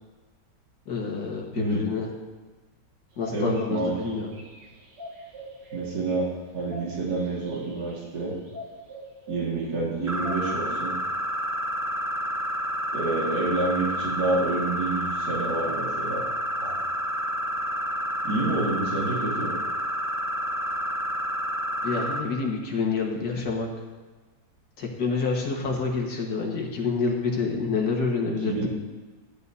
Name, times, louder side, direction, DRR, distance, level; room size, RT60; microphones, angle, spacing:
voice 1, 0.9-2.1 3.2-4.3 21.8-23.7 24.8-28.7, left 4 dB, 75° left, 0 dB, 2.1 m, -28 dB
voice 2, 1.5-1.8 3.3-4.2 5.7-6.3 6.5-8.3 9.3-10.9 12.9-16.2 16.6-16.8 18.2-19.6 28.4-28.7, right 2 dB, 65° right, -4 dB, 2.5 m, -28 dB
sound 1, 3.1-10.5, right 2 dB, 85° right, 2.1 m, -42 dB
sound 2, 10.1-22.2, equal, 25° right, 0.3 m, -29 dB
13.0 x 10.5 x 2.7 m, 1.3 s
omnidirectional pair, 1.8 m